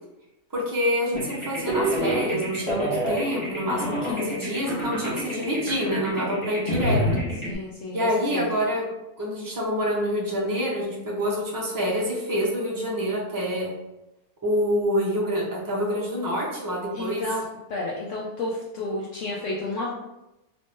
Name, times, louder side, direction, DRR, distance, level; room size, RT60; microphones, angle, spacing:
voice 1, 0.5-7.0 7.9-8.8 9.2-13.7 14.4-17.2, equal, 20° right, -4 dB, 0.5 m, -26 dB
sound 1, 1.1-7.5, equal, 25° left, 0.8 m, -28 dB
voice 2, 7.4-8.5 16.9-17.4 17.7-20.0, left 2 dB, 65° left, -4 dB, 0.9 m, -31 dB
3.1 x 2.6 x 3.5 m, 0.95 s
omnidirectional pair, 1.5 m